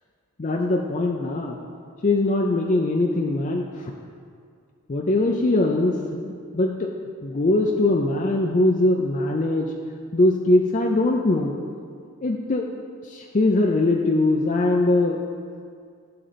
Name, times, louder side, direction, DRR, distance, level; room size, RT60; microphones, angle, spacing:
voice 1, 0.4-1.6 2.0-3.9 4.9-6.9 7.2-9.7 10.1-11.6 12.2-12.7 13.1-15.2, left 2 dB, 35° left, 1 dB, 0.4 m, -21 dB
11.0 x 3.8 x 6.7 m, 2.1 s
head